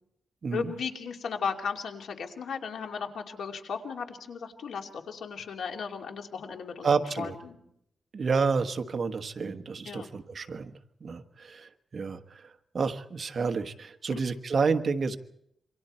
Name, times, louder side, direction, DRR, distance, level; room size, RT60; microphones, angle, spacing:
voice 1, 0.5-6.9 7.2-7.6 9.8-10.1 14.1-14.2, left 6 dB, 85° left, 3 dB, 2.7 m, -35 dB
voice 2, 6.8-7.3 8.1-10.7 11.0-15.2, right 5 dB, 45° right, 8 dB, 1.3 m, -30 dB
27.5 x 24.5 x 4.4 m, 0.75 s
wide cardioid pair, 135°, 0 cm